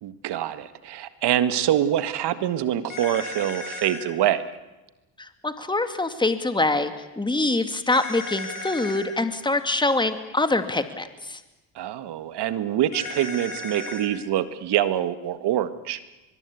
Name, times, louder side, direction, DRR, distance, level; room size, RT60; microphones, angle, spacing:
voice 1, 0.0-4.4 11.8-16.0, right 11 dB, 60° right, 12 dB, 1.8 m, -25 dB
sound 1, 2.9-4.0 7.9-9.1 12.9-14.1, left 2 dB, 45° left, 5.5 m, -35 dB
voice 2, 5.2-11.4, left 2 dB, 10° left, 9 dB, 2.3 m, -25 dB
24.0 x 22.0 x 8.5 m, 1.1 s
supercardioid pair, 70°, 45 cm